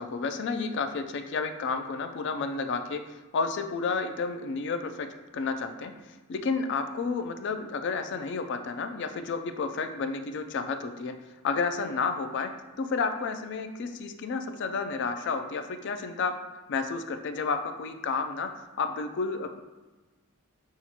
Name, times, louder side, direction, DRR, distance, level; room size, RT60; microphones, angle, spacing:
voice 1, 0.0-3.0 3.3-5.1 5.3-5.9 6.3-11.1 11.4-12.5 12.8-16.3 16.7-18.5 18.8-19.5, left 4 dB, 55° left, 7 dB, 0.3 m, -31 dB
5.8 x 2.4 x 2.8 m, 1.2 s
head